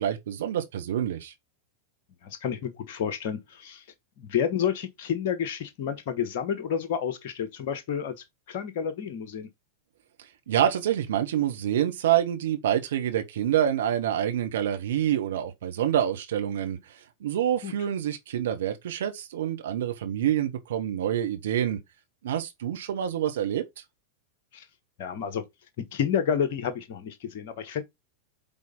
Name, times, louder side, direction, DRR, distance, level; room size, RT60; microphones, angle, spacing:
voice 1, 0.0-1.3 10.5-21.8 22.2-23.6, right 10 dB, 60° right, 1.1 m, -27 dB
voice 2, 2.2-3.8 4.2-8.1 8.5-9.5 17.6-17.7 24.5-24.6 25.0-25.4 25.9-27.8, left 8 dB, 50° left, 1.3 m, -30 dB
8.8 x 3.8 x 3.9 m
figure-of-eight pair, 90°, 0 cm